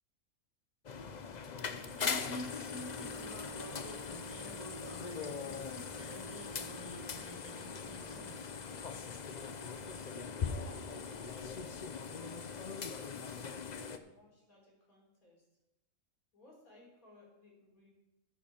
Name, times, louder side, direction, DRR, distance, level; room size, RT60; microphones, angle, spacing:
sound 1, 0.8-14.0, left 5 dB, 45° left, 0.6 m, -41 dB
sound 2, 1.8-2.0 2.5-2.7 3.3-5.0 5.5-5.7 6.3-8.0 8.5-8.7 9.3-10.8, right 2 dB, 30° right, 3.9 m, -65 dB
voice 1, 1.9-8.7, equal, 10° right, -1 dB, 1.9 m, -49 dB
voice 2, 10.3-11.3 12.4-15.5 16.3-17.9, left 1 dB, 70° left, -3 dB, 4.7 m, -62 dB
13.5 x 9.8 x 4.4 m, 0.98 s
omnidirectional pair, 1.5 m